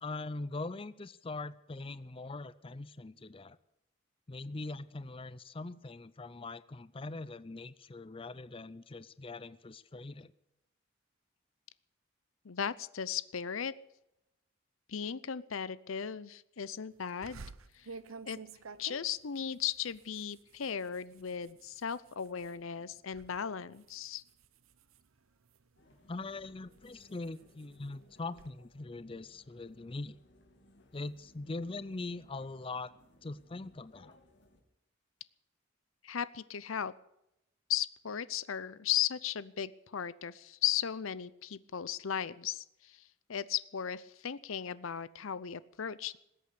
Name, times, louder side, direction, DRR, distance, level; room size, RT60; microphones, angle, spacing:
voice 1, 0.0-3.6 4.3-10.3 26.1-30.2 30.9-32.9 33.2-34.2, left 3 dB, 25° left, 16 dB, 0.5 m, -42 dB
voice 2, 12.4-13.7 14.9-17.4 17.7-17.9 18.3-18.4 18.8-24.2 36.0-36.9 37.7-46.2, left 9 dB, 80° left, 17 dB, 0.6 m, -36 dB
sound 1, 17.2-22.6 23.0-23.4 23.7-25.8 26.3-28.5, right 4 dB, 90° right, 0.8 m, -52 dB
sound 2, 25.8-34.6, left 1 dB, 60° left, 2.7 m, -63 dB
20.0 x 8.5 x 8.3 m, 0.83 s
head